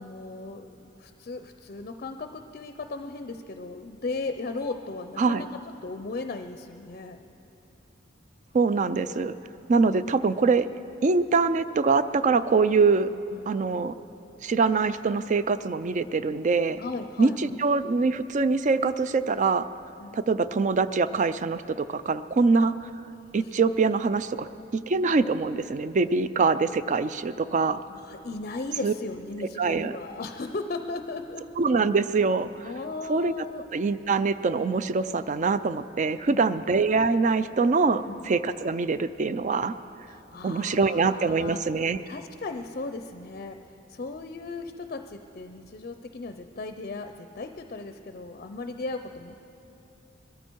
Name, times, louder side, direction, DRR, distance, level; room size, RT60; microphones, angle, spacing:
voice 1, 0.0-5.5 5.8-7.2 9.8-10.0 13.3-13.5 16.8-17.6 20.0-20.2 23.4-23.5 27.9-31.4 32.6-33.7 36.3-36.6 38.1-38.2 40.1-41.6 42.1-43.6 43.9-49.3, left 3 dB, 45° left, 7 dB, 0.5 m, -37 dB
voice 2, 8.5-9.3 9.7-10.7 11.0-13.1 13.5-13.9 14.4-16.8 17.2-19.7 20.1-22.7 23.3-27.8 28.8-28.9 29.6-30.0 31.6-32.7 33.1-33.3 33.7-39.8 40.4-42.0, right 4 dB, 40° right, 13 dB, 0.4 m, -24 dB
21.5 x 14.0 x 4.6 m, 2.9 s
head